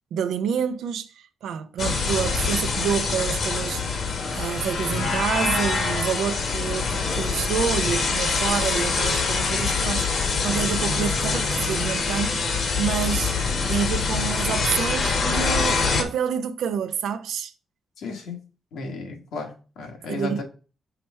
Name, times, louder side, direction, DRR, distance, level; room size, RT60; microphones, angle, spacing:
voice 1, 0.1-3.8 4.3-10.1 10.4-13.4 13.7-17.5 20.1-20.4, right 8 dB, 80° right, 0.6 m, -28 dB
sound 1, 1.8-16.0, left 4 dB, 70° left, 1.3 m, -24 dB
voice 2, 18.0-18.4 18.7-20.4, left 3 dB, 85° left, 1.5 m, -34 dB
5.8 x 3.2 x 5.4 m
supercardioid pair, 60°, 0 cm